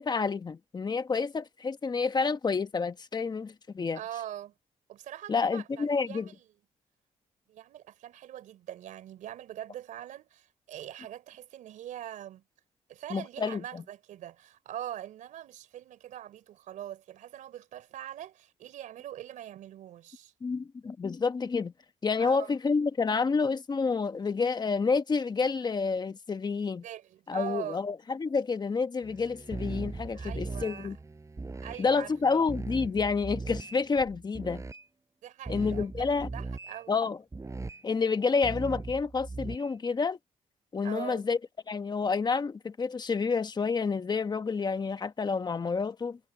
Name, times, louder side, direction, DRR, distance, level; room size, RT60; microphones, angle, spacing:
voice 1, 0.0-4.0 5.3-6.3 13.1-13.8 20.4-21.7 22.0-26.8 27.3-31.0 31.8-34.6 35.5-36.3 36.9-37.2 37.8-40.2 40.7-41.4 41.7-46.2, left 4 dB, 35° left, 1.2 m, -29 dB
voice 2, 3.9-4.5 4.9-6.4 7.5-12.4 12.9-20.3 22.2-22.5 26.8-27.8 30.1-30.9 31.6-32.1 35.2-37.0 40.8-41.2, right 11 dB, 85° right, 4.2 m, -42 dB
sound 1, 29.0-34.8 35.5-36.8 37.3-37.8 38.4-39.7, right 3 dB, 25° right, 6.9 m, -39 dB
cardioid pair, 100°, 13 cm